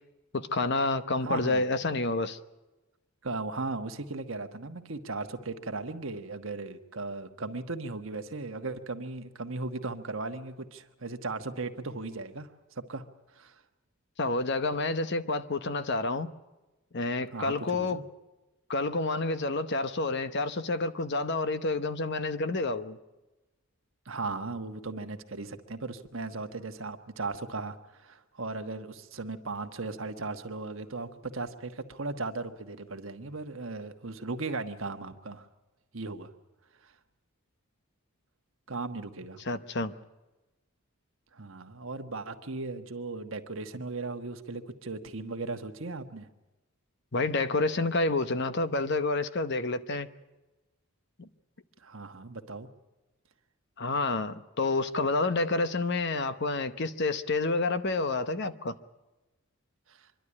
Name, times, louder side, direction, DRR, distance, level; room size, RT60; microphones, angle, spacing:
voice 1, 0.3-2.4 14.2-16.3 16.9-18.0 18.7-23.0 39.5-39.9 47.1-50.1 53.8-58.8, left 3 dB, 50° left, 0.9 m, -29 dB
voice 2, 1.2-1.6 3.2-13.0 13.3-13.6 17.3-18.0 24.0-35.5 35.9-36.3 36.8-36.9 38.7-39.4 41.3-46.3 51.8-52.7 59.9-60.1, right 3 dB, 60° right, 1.3 m, -37 dB
25.0 x 12.0 x 9.8 m
head